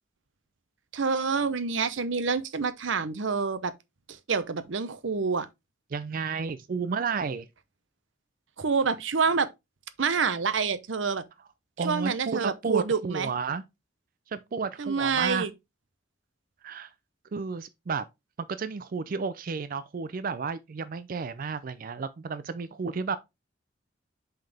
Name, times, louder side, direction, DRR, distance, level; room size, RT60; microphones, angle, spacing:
voice 1, 0.9-3.7 4.3-5.5 8.6-9.5 10.0-11.2 11.8-13.3 14.8-15.5, right 5 dB, 80° right, 0.8 m, -27 dB
voice 2, 5.9-7.5 11.8-13.6 14.3-15.5 16.6-16.9 17.3-18.1 18.5-23.2, right 5 dB, 45° right, 0.4 m, -32 dB
5.6 x 5.4 x 3.4 m
head